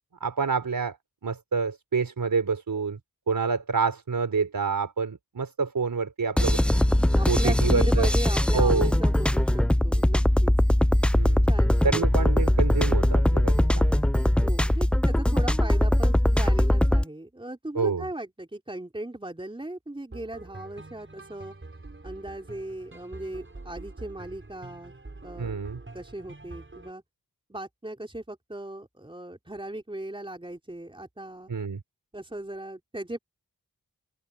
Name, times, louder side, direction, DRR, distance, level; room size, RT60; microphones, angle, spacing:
voice 1, 0.2-1.0 1.2-3.0 3.3-6.6 7.3-8.1 8.5-8.9 11.2-11.5 11.8-14.0 17.7-18.1 25.4-25.8 31.5-31.8, right 5 dB, 65° right, 4.1 m, -27 dB
sound 1, 6.4-17.0, left 1 dB, 5° left, 0.3 m, -21 dB
voice 2, 7.2-10.5 11.4-12.0 14.4-21.5 22.0-24.9 25.2-25.5 25.9-27.0 27.5-31.5 32.1-33.2, right 1 dB, 15° right, 3.7 m, -37 dB
sound 2, 20.1-26.9, right 2 dB, 30° right, 7.3 m, -45 dB
open air
cardioid pair, 65°, 37 cm